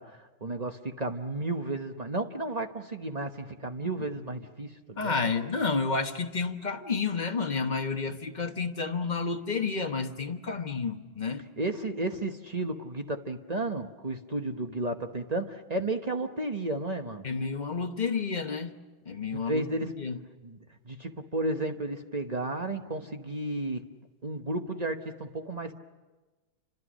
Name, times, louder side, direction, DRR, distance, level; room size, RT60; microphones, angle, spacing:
voice 1, 0.0-5.2 11.6-17.2 19.5-19.9 20.4-20.6 20.9-23.8 24.2-25.7, right 2 dB, 30° right, 0.8 m, -33 dB
voice 2, 5.0-11.5 17.2-18.8 19.1-20.2, left 4 dB, 30° left, 1.0 m, -30 dB
29.5 x 25.5 x 6.3 m
omnidirectional pair, 2.2 m